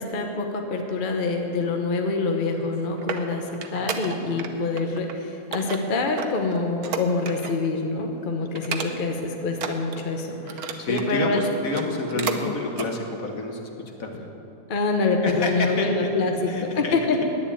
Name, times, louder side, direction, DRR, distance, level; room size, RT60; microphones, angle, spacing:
voice 1, 0.0-11.4 12.2-12.4 14.7-17.2, left 3 dB, 40° left, 3 dB, 1.0 m, -26 dB
sound 1, 2.5-4.5 4.8-5.1 5.5-7.7 8.0-8.2 8.6-9.2 9.5-11.1 11.6-12.4 12.7-12.9 13.4-13.5, right 7 dB, 70° right, 1.3 m, -33 dB
voice 2, 3.7-4.2 10.8-14.3 15.2-16.1 16.5-16.9, left 2 dB, 60° left, 3 dB, 1.6 m, -29 dB
10.5 x 9.6 x 8.6 m, 2.9 s
omnidirectional pair, 1.7 m